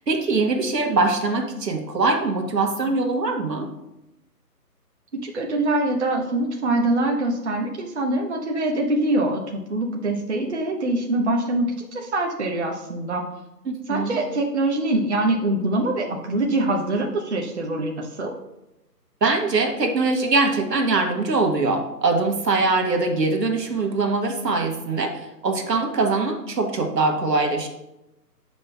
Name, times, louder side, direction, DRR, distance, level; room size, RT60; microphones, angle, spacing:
voice 1, 0.1-3.7 13.7-14.2 19.2-27.7, right 3 dB, 75° right, 4 dB, 1.4 m, -22 dB
voice 2, 5.1-13.2 13.9-18.3, right 2 dB, 45° right, 0 dB, 0.8 m, -24 dB
8.6 x 5.3 x 2.3 m, 0.89 s
figure-of-eight pair, 160°, 49 cm